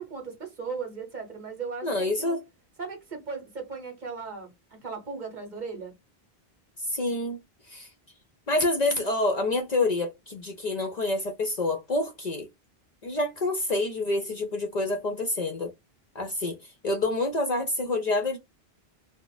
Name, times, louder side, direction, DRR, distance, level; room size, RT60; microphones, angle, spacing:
voice 1, 0.0-2.4 2.8-4.5 4.8-5.9, right 5 dB, 50° right, 0.9 m, -37 dB
voice 2, 1.8-2.4 6.8-7.4 7.7-7.9 8.5-12.5 13.0-15.7 16.1-18.4, left 2 dB, 50° left, 0.6 m, -27 dB
2.4 x 2.1 x 3.8 m
omnidirectional pair, 1.1 m